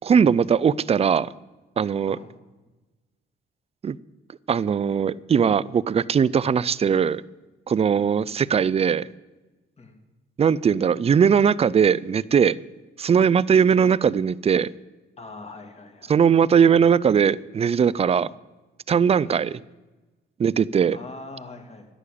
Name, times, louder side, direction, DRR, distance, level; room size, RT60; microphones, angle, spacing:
voice 1, 0.0-1.3 1.8-2.2 3.8-4.0 4.5-7.2 7.7-9.1 10.4-12.5 13.0-14.7 16.1-18.3 18.9-19.6 20.4-21.0, right 7 dB, 30° right, 20 dB, 0.4 m, -20 dB
voice 2, 15.2-16.4 19.3-19.6 20.9-21.9, left 3 dB, 30° left, 4 dB, 2.5 m, -42 dB
11.5 x 10.0 x 8.5 m, 1.2 s
cardioid pair, 90°, 20 cm